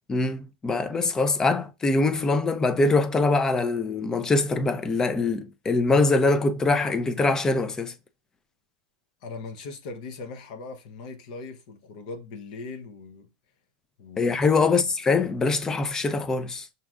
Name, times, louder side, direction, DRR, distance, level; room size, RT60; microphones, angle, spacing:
voice 1, 0.1-7.9 14.2-16.7, left 3 dB, 15° left, 0.3 m, -23 dB
voice 2, 9.2-13.3 14.0-14.2 14.6-14.9, left 3 dB, 60° left, 0.7 m, -40 dB
6.0 x 2.7 x 2.3 m
supercardioid pair, 150°, 4 cm